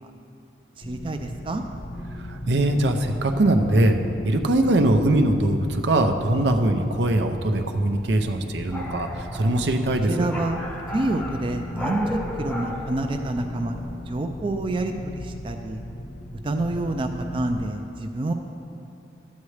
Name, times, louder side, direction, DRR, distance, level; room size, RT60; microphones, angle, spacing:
sound 1, 0.8-17.5, equal, 75° left, 0.9 m, -37 dB
voice 1, 0.8-1.6 10.1-10.6 10.9-15.8 16.4-18.3, right 2 dB, 30° right, 5 dB, 0.4 m, -28 dB
voice 2, 2.2-4.0 4.2-10.3, right 1 dB, 75° right, 6 dB, 0.6 m, -21 dB
sound 2, 7.5-14.0, left 1 dB, 5° left, 0.7 m, -36 dB
12.5 x 8.3 x 3.2 m, 2.7 s
head